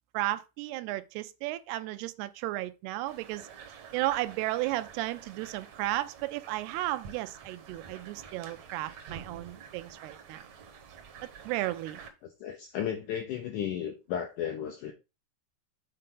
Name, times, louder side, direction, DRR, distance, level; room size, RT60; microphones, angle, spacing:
voice 1, 0.1-3.5 3.9-10.5 11.5-12.0, right 16 dB, 85° right, 2.6 m, -34 dB
sound 1, 3.1-12.1, right 6 dB, 70° right, 1.7 m, -49 dB
voice 2, 12.4-14.9, left 9 dB, 80° left, 1.8 m, -34 dB
7.8 x 4.2 x 3.7 m
omnidirectional pair, 4.6 m